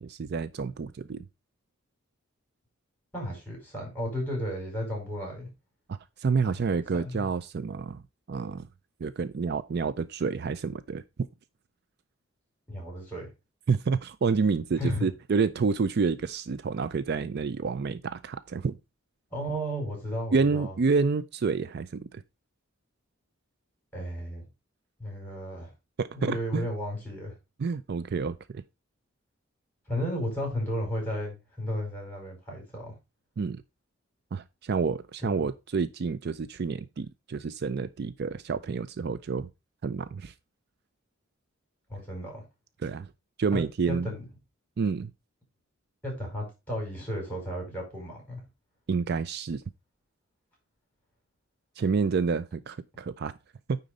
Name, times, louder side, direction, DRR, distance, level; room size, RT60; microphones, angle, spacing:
voice 1, 0.0-1.2 5.9-8.0 8.3-8.7 9.0-11.0 13.7-18.8 20.3-22.2 26.0-26.7 27.6-28.6 33.4-33.6 34.3-39.5 39.8-40.3 42.8-43.1 43.4-44.1 44.8-45.1 48.9-49.6 51.8-53.3 53.7-53.8, right 5 dB, 50° right, 0.4 m, -29 dB
voice 2, 3.1-5.5 6.4-6.6 7.0-7.3 12.7-13.3 14.8-15.1 19.3-20.7 23.9-24.5 25.0-25.7 26.1-27.3 29.9-33.0 35.2-35.3 41.9-42.4 43.5-43.6 43.9-44.2 46.0-48.4, equal, 10° left, 5.0 m, -34 dB
9.4 x 4.0 x 5.0 m
head